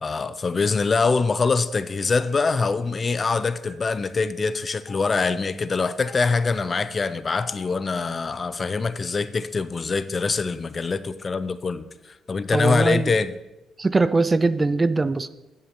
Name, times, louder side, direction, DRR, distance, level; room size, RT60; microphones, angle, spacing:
voice 1, 0.0-11.9 12.3-13.3, left 4 dB, 35° left, 0.4 m, -24 dB
Stream, 2.5-2.6 3.7-3.8 4.9-5.0 6.1-6.2 7.3-7.6, left 4 dB, 10° left, 1.8 m, -44 dB
voice 2, 12.5-13.1 13.8-15.3, right 3 dB, 25° right, 0.4 m, -21 dB
10.5 x 7.1 x 3.6 m
cardioid pair, 90°, 0 cm